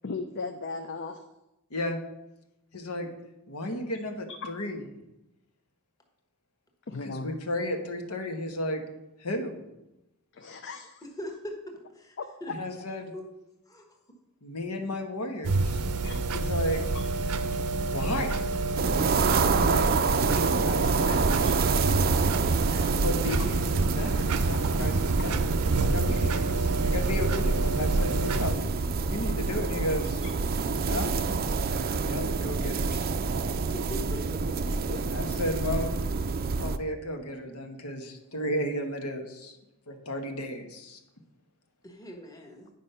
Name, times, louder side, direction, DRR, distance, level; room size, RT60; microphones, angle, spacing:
voice 1, 0.0-1.2 4.4-4.5 6.9-7.4 10.3-11.0 12.2-12.6 16.0-16.2 19.4-19.7 21.4-21.5 30.2-30.3 34.9-35.0, left 4 dB, 55° left, 6 dB, 0.5 m, -37 dB
voice 2, 2.7-3.1 3.5-4.8 7.0-8.8 9.2-9.5 12.5-13.1 14.4-15.8 16.3-16.8 17.8-18.3 19.5-19.9 20.3-21.5 23.0-25.6 25.8-30.2 30.8-31.1 32.0-33.1 35.1-35.9 36.6-39.6 39.9-41.0, left 1 dB, 80° left, 4 dB, 1.2 m, -34 dB
voice 3, 12.0-12.5 13.1-13.2 13.7-13.8 16.1-16.4 20.3-20.5 22.6-22.9 33.5-34.4 41.8-42.7, left 1 dB, 15° left, 2 dB, 1.2 m, -41 dB
sound 1, 15.4-28.5, right 3 dB, 85° right, 0.6 m, -28 dB
sound 2, 18.8-36.8, right 4 dB, 45° right, 0.4 m, -28 dB
9.6 x 5.2 x 5.5 m, 0.92 s
head